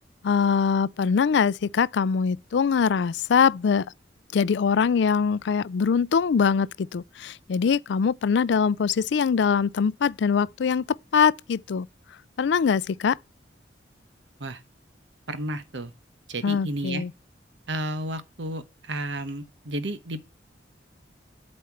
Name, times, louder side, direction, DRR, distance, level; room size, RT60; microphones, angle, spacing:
voice 1, 0.2-3.9 4.3-10.8 11.1-11.9 12.4-13.2 16.4-17.1, left 6 dB, 65° left, 0.4 m, -23 dB
voice 2, 15.3-15.9 16.3-17.0 17.7-20.2, right 1 dB, 75° right, 1.1 m, -32 dB
8.4 x 4.3 x 7.2 m
head